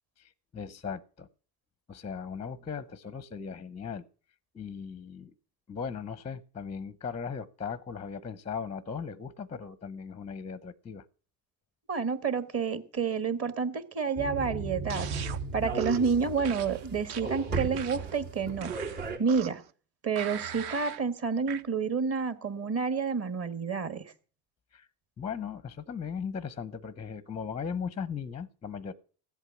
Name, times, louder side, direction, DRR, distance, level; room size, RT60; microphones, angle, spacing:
voice 1, 0.2-1.3 1.9-4.1 4.5-5.3 5.7-11.0 24.7-24.9 25.2-28.9, left 6 dB, 15° left, 0.5 m, -38 dB
voice 2, 11.9-15.1 15.5-18.7 19.2-19.6 20.0-24.0, right 5 dB, 30° right, 1.4 m, -29 dB
sound 1, 14.1-19.2, right 4 dB, 70° right, 3.3 m, -35 dB
sound 2, 14.9-15.4 15.8-16.1 16.4-18.2 18.6-19.7 20.2-21.0 21.5-21.6, right 9 dB, 55° right, 1.0 m, -41 dB
14.5 x 8.1 x 6.9 m
supercardioid pair, 100°, 45 cm